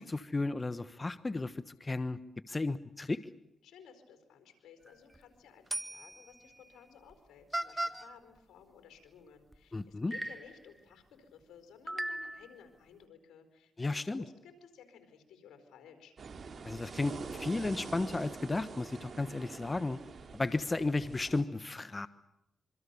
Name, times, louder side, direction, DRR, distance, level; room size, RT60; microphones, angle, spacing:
voice 1, 0.0-2.2 2.5-3.3 9.7-10.1 13.8-14.2 16.6-20.0 20.3-22.1, left 3 dB, 30° left, 13 dB, 1.1 m, -34 dB
voice 2, 3.6-16.1, left 7 dB, 85° left, 8 dB, 4.6 m, -56 dB
sound 1, 4.9-5.2 5.7-6.3 7.1-7.2 7.5-8.1 9.5-9.6 10.1-10.6 11.9-12.6, right 1 dB, 10° right, 1.6 m, -37 dB
sound 2, 16.2-21.4, right 5 dB, 60° right, 2.3 m, -45 dB
26.5 x 25.0 x 6.9 m, 0.85 s
supercardioid pair, 55°, 0 cm